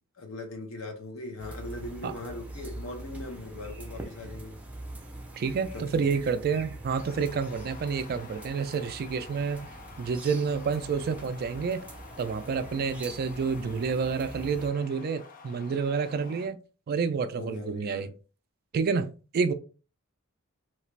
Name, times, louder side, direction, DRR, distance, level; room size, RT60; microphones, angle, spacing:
voice 1, 0.1-4.6 5.7-6.1 17.3-18.1, left 2 dB, 70° left, 0.9 m, -40 dB
sound 1, 1.4-14.7, right 1 dB, 5° right, 0.6 m, -44 dB
voice 2, 5.4-9.7 10.0-11.8 12.2-16.6 16.9-18.1 18.7-19.5, right 5 dB, 45° right, 0.3 m, -29 dB
sound 2, 6.9-16.5, left 4 dB, 40° left, 0.4 m, -49 dB
3.2 x 2.4 x 3.1 m
head